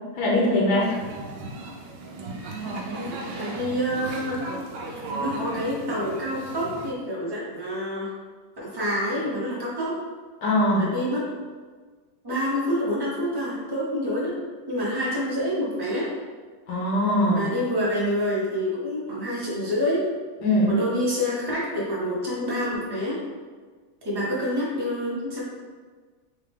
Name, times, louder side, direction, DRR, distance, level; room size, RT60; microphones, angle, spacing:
voice 1, 0.2-0.9 10.4-10.9 16.7-17.4 20.4-20.7, left 1 dB, 75° left, -4 dB, 1.6 m, -21 dB
sound 1, 0.8-6.9, right 2 dB, 70° right, 1.2 m, -35 dB
voice 2, 2.8-4.6 4.8-8.1 8.6-10.0 10.7-11.3 12.2-14.3 14.7-16.1 17.3-20.1 20.7-23.2 24.0-25.4, equal, 20° right, -7 dB, 0.7 m, -27 dB
3.8 x 3.3 x 3.5 m, 1.5 s
omnidirectional pair, 2.1 m